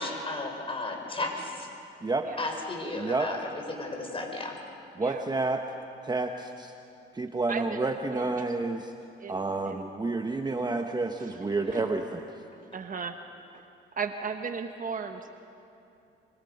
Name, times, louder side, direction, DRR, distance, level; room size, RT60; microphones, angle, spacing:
voice 1, 0.0-1.7 2.4-3.4 3.7-4.6 11.6-11.8, left 2 dB, 25° left, 2 dB, 4.8 m, -34 dB
voice 2, 2.9-3.3 4.9-5.6 6.0-6.7 7.1-8.9 9.3-12.4, right 3 dB, 20° right, 5 dB, 1.1 m, -30 dB
voice 3, 7.5-8.4 9.2-9.9 11.7-11.8 12.7-13.2 13.5-13.6 14.0-15.3, right 5 dB, 45° right, 6 dB, 1.2 m, -36 dB
25.0 x 24.5 x 5.4 m, 2.7 s
cardioid pair, 90°, 20 cm